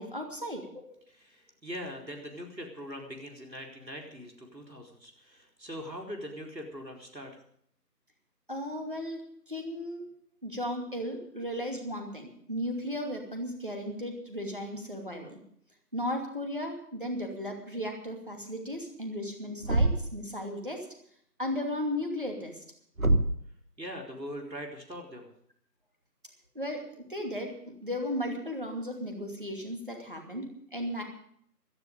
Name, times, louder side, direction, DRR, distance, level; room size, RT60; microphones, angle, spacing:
voice 1, 0.0-1.0 8.5-10.1 10.4-15.4 15.9-20.9 21.4-22.6 26.5-31.0, equal, 30° right, 2 dB, 2.6 m, -35 dB
voice 2, 1.1-7.4 23.8-25.3, equal, 85° right, 1 dB, 4.4 m, -42 dB
Thump thud, 19.6-20.3 23.0-23.5, right 2 dB, 55° right, 1.0 m, -25 dB
17.0 x 13.5 x 5.2 m, 0.66 s
figure-of-eight pair, 175°, 50 cm